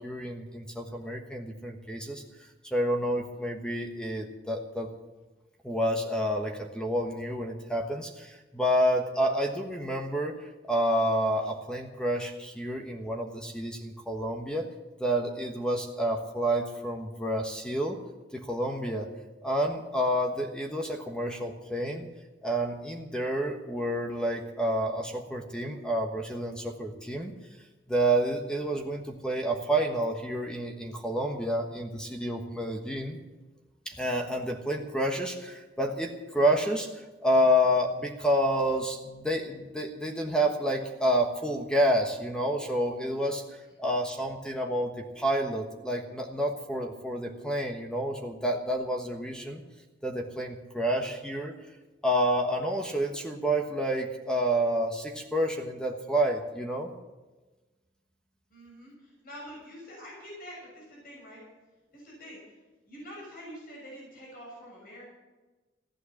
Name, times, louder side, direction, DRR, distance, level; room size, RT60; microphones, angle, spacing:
voice 1, 0.0-2.2 2.6-4.9 5.6-10.3 10.7-14.7 15.0-18.0 18.3-19.1 19.4-22.1 22.4-27.3 27.9-33.2 33.9-43.4 43.8-49.6 50.0-51.5 52.0-56.9, equal, 5° left, 2 dB, 1.3 m, -29 dB
voice 2, 58.5-61.4 61.9-62.4 62.9-65.1, equal, 55° left, -3 dB, 6.7 m, -46 dB
15.5 x 11.0 x 7.2 m, 1.2 s
head